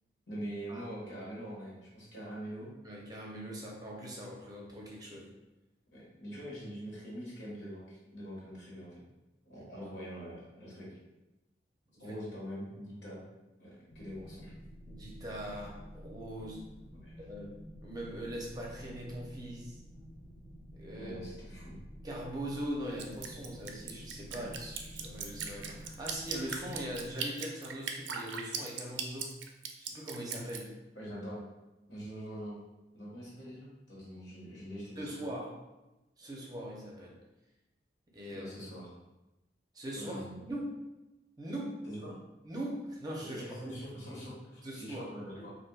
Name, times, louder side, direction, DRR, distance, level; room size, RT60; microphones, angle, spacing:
voice 1, 0.3-2.7 5.9-9.0 9.4-10.9 12.0-13.2 13.6-14.5 17.0-17.3 20.9-21.8 24.3-24.4 30.9-31.4 31.9-32.6 32.9-35.2 38.2-39.0 39.9-40.4 41.8-42.2 43.2-45.5, equal, 80° left, -6 dB, 1.4 m, -44 dB
voice 2, 2.8-5.3 9.6-9.9 14.8-16.6 17.2-17.5 17.8-19.8 20.7-21.2 22.0-29.3 29.8-30.7 35.0-35.5 36.2-37.1 38.1-38.4 39.7-40.1 40.5-40.7 41.4-41.7 42.4-43.8 44.6-45.1 45.4-45.5, right 1 dB, 20° right, -2 dB, 0.6 m, -41 dB
sound 1, 13.9-27.1, equal, 55° left, 0.6 m, -50 dB
Drip, 23.0-30.6, right 6 dB, 90° right, 0.4 m, -38 dB
4.2 x 2.6 x 2.3 m, 1.0 s
head